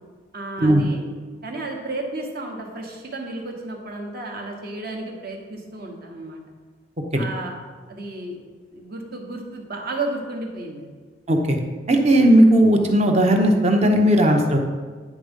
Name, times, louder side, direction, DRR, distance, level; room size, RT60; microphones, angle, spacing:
voice 1, 0.3-1.0 1.4-6.4 7.1-7.6 7.9-8.4 8.7-11.0, right 2 dB, 55° right, 1 dB, 1.2 m, -32 dB
voice 2, 11.9-14.6, right 1 dB, 35° right, 3 dB, 0.8 m, -16 dB
9.5 x 3.6 x 5.2 m, 1.4 s
head